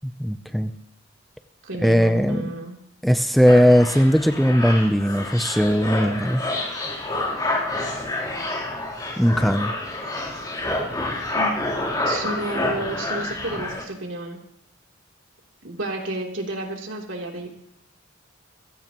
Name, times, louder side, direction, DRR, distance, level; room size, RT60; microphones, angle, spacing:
voice 1, 0.0-0.7 1.8-2.5 3.0-6.4 9.2-9.7, equal, ahead, 8 dB, 0.5 m, -18 dB
voice 2, 1.6-2.8 11.3-11.6 12.0-14.4 15.6-17.5, right 2 dB, 70° right, 0 dB, 3.2 m, -31 dB
sound 1, 3.5-13.8, left 2 dB, 20° left, 3.5 m, -28 dB
25.5 x 16.0 x 3.0 m, 0.77 s
head